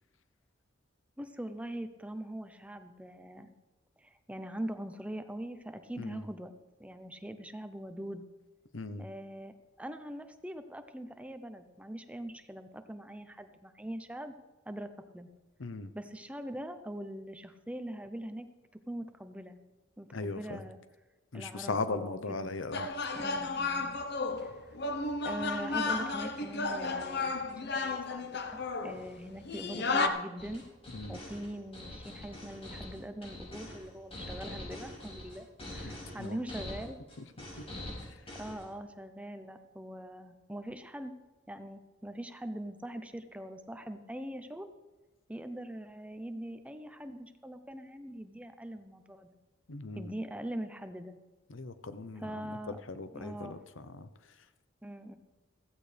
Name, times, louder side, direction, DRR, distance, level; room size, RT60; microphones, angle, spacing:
voice 1, 1.2-3.5 4.0-6.5 6.8-8.2 9.0-14.3 14.7-15.3 15.9-18.5 18.9-19.6 20.0-20.8 21.3-22.5 23.1-23.9 24.4-24.6 25.2-30.6 31.1-37.0 38.3-41.1 41.5-44.7 45.3-49.3 49.9-51.2 52.1-52.9 53.1-53.6 54.8-55.2, right 1 dB, 5° right, 9 dB, 0.7 m, -42 dB
voice 2, 8.7-9.0 15.6-15.9 20.1-20.6 21.3-22.9 30.9-31.2 35.8-35.9 36.2-36.4 49.7-50.1 51.5-53.6 54.0-54.1, left 3 dB, 85° left, 11 dB, 0.8 m, -38 dB
sound 1, 22.7-30.1, left 3 dB, 60° left, 1.0 m, -33 dB
sound 2, 30.4-38.6, left 1 dB, 30° left, 5.8 m, -44 dB
15.5 x 15.0 x 3.4 m, 1.1 s
head